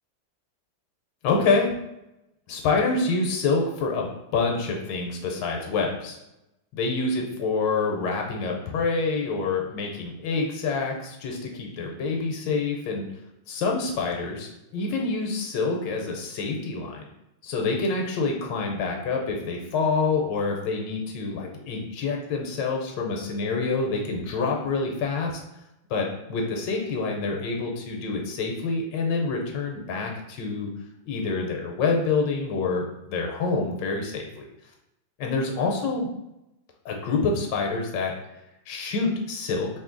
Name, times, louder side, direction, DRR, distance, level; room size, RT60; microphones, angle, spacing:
voice 1, 1.2-1.7 2.5-4.1 4.3-6.2 6.7-13.1 13.5-17.0 17.4-25.3 25.9-30.7 31.1-34.4 35.2-36.1 36.8-38.1 38.7-39.7, left 4 dB, 85° left, 1 dB, 1.3 m, -27 dB
3.0 x 2.6 x 3.7 m, 0.89 s
omnidirectional pair, 2.0 m